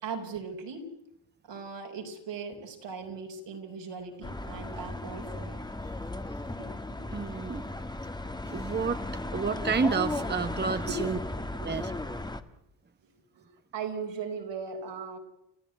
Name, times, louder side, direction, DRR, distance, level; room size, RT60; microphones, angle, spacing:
voice 1, 0.0-0.9 1.5-5.6 6.6-7.1 9.0-9.4 10.8-11.0 11.6-11.9 13.3-15.2, right 5 dB, 75° right, 3 dB, 5.0 m, -39 dB
sound 1, 4.2-12.4, left 2 dB, 10° left, 1.5 m, -36 dB
voice 2, 7.1-7.6 8.4-9.0 9.3-11.2 11.6-11.9, right 5 dB, 25° right, 10 dB, 1.1 m, -30 dB
30.0 x 14.5 x 9.3 m, 0.82 s
cardioid pair, 90°, 43 cm